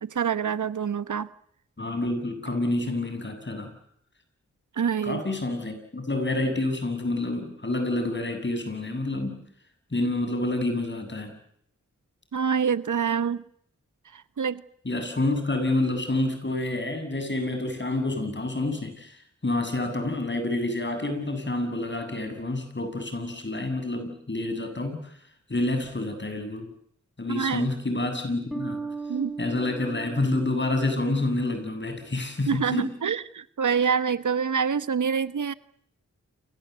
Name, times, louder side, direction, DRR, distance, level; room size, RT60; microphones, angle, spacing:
voice 1, 0.0-1.3 4.8-5.2 12.3-13.4 14.1-14.6 27.3-27.7 29.1-29.4 32.5-35.5, right 6 dB, 85° right, 14 dB, 1.1 m, -26 dB
voice 2, 1.8-3.7 5.0-9.4 9.9-11.4 14.8-19.2 19.4-25.1 25.5-26.7 27.2-28.8 29.4-32.9, left 2 dB, 40° left, 7 dB, 7.7 m, -28 dB
sound 1, 28.5-31.9, right 4 dB, ahead, 4.2 m, -38 dB
29.0 x 24.5 x 8.2 m, 0.68 s
wide cardioid pair, 75°, 30 cm